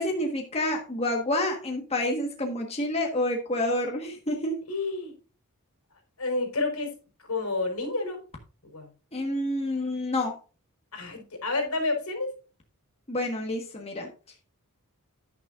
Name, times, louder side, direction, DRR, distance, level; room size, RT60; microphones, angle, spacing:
voice 1, 0.0-4.6 9.1-10.4 13.1-14.1, left 1 dB, 30° left, 1 dB, 1.5 m, -28 dB
voice 2, 4.7-5.1 6.2-6.9 7.3-8.2 8.7-8.9 10.9-12.3, left 3 dB, 75° left, 3 dB, 4.7 m, -29 dB
10.5 x 9.9 x 2.6 m, 0.34 s
head